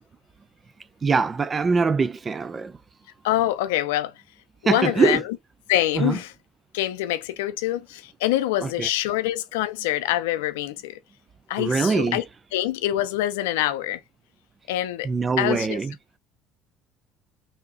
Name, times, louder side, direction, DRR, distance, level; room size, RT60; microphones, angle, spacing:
voice 1, 1.0-2.8 4.7-5.2 5.9-6.2 8.6-8.9 11.6-12.2 15.0-15.9, right 4 dB, 30° right, 0.5 m, -23 dB
voice 2, 3.2-4.1 4.6-5.2 5.7-6.3 6.7-11.0 11.5-12.2 12.5-14.0 14.7-15.1 15.4-15.8, left 14 dB, 85° left, 0.5 m, -25 dB
3.2 x 2.9 x 4.0 m
supercardioid pair, 80°, 0 cm